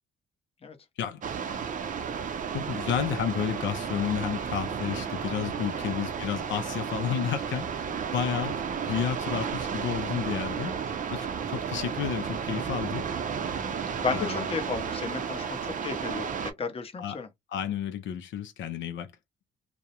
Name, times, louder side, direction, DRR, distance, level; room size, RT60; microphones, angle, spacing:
sound 1, 1.2-16.5, right 6 dB, 40° right, 0.5 m, -33 dB
voice 1, 2.5-7.9 8.1-10.7 11.1-13.1 14.1-14.5 17.0-17.2 17.5-19.1, left 8 dB, 70° left, 0.5 m, -31 dB
voice 2, 14.0-17.3, left 5 dB, 30° left, 0.7 m, -33 dB
2.3 x 2.0 x 2.8 m
cardioid pair, 90°, 20 cm